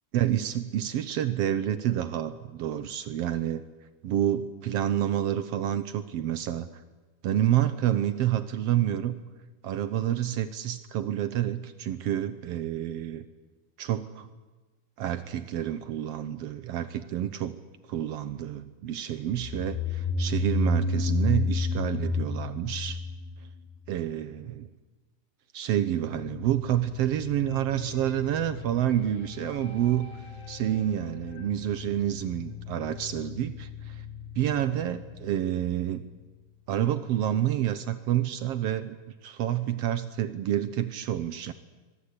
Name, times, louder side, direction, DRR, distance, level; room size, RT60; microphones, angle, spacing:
voice 1, 0.1-3.6 4.0-6.7 7.2-9.1 9.6-13.2 13.8-14.3 15.0-17.6 17.9-23.0 23.9-24.7 25.5-34.0 34.4-36.0 36.7-39.0 39.2-41.5, right 11 dB, 90° right, 12 dB, 1.3 m, -28 dB
sound 1, 19.4-23.9, left 3 dB, 80° left, 3.1 m, -28 dB
sound 2, 26.0-36.9, left 7 dB, 55° left, 5.8 m, -43 dB
24.0 x 21.5 x 9.7 m, 1.2 s
omnidirectional pair, 4.1 m